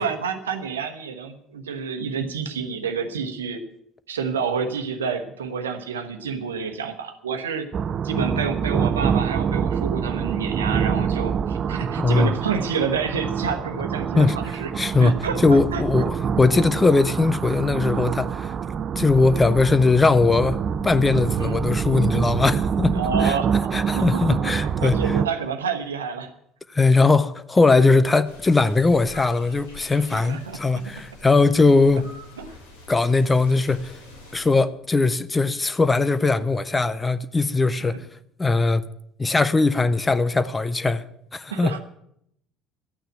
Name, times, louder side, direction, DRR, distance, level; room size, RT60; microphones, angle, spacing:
voice 1, 0.0-3.6 4.1-7.7 8.0-14.7 15.0-15.8 21.4-21.6 22.9-23.5 23.9-26.3 30.1-30.6 32.4-32.5 33.5-33.6 37.8-38.0 41.5-41.8, right 6 dB, 75° right, 1.2 m, -29 dB
sound 1, 7.7-25.3, right 7 dB, 40° right, 0.5 m, -26 dB
voice 2, 12.0-12.3 14.2-18.5 19.0-20.6 20.8-23.4 23.7-25.2 26.7-32.1 32.9-34.0 34.3-38.1 38.4-38.8 39.2-41.0 41.3-41.7, left 3 dB, 20° left, 0.7 m, -20 dB
sound 2, 28.2-34.5, left 1 dB, 80° left, 3.8 m, -45 dB
12.5 x 9.2 x 8.8 m
figure-of-eight pair, 60°, 0 cm